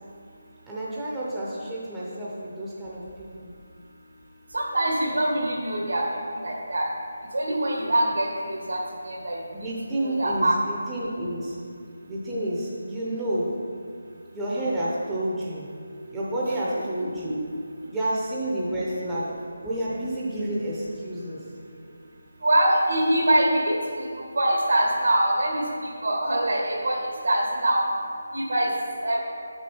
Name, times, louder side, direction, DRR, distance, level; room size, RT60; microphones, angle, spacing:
voice 1, 0.7-3.0 3.4-3.5 9.5-11.6 12.1-13.5 14.3-15.7 16.1-17.4 17.9-19.3 19.6-21.4, right 1 dB, 5° right, -8 dB, 0.7 m, -29 dB
voice 2, 4.5-6.0 6.3-6.8 7.3-8.8 9.0-10.6 19.1-19.2 22.4-25.6 26.0-27.8 28.3-28.7 29.0-29.2, right 1 dB, 75° right, -1 dB, 1.7 m, -24 dB
7.0 x 6.3 x 4.4 m, 2.3 s
figure-of-eight pair, 175°, 0 cm